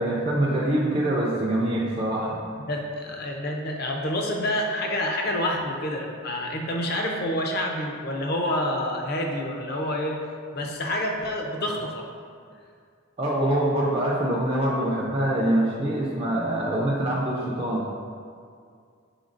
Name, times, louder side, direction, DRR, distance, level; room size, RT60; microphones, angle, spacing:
voice 1, 0.0-2.4 13.2-17.9, right 1 dB, 25° right, -5 dB, 0.4 m, -24 dB
voice 2, 2.7-10.2 10.5-12.0, left 1 dB, 50° left, 1 dB, 0.5 m, -28 dB
5.2 x 3.9 x 2.5 m, 2.2 s
head